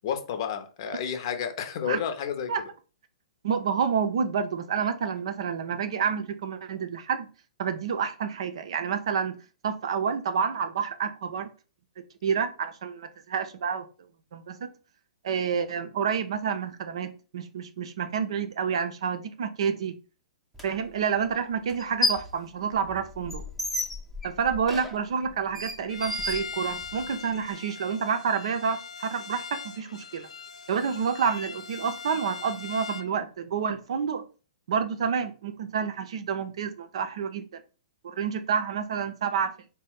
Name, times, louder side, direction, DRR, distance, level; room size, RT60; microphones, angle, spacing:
voice 1, 0.0-2.5, left 8 dB, 45° left, 6 dB, 0.8 m, -31 dB
voice 2, 3.4-7.3 7.6-9.4 9.6-11.5 12.0-13.9 14.3-14.7 15.2-19.9 20.6-23.4 24.2-30.3 30.7-34.2 34.7-37.6 38.0-39.5, right 6 dB, 55° right, 8 dB, 0.5 m, -29 dB
sound 1, 20.5-20.6 21.7-22.4 22.7-27.1, left 3 dB, ahead, 0.7 m, -32 dB
Bowed string instrument, 25.9-33.1, left 6 dB, 70° left, 0.4 m, -41 dB
4.1 x 2.2 x 3.8 m, 0.35 s
figure-of-eight pair, 115°, 4 cm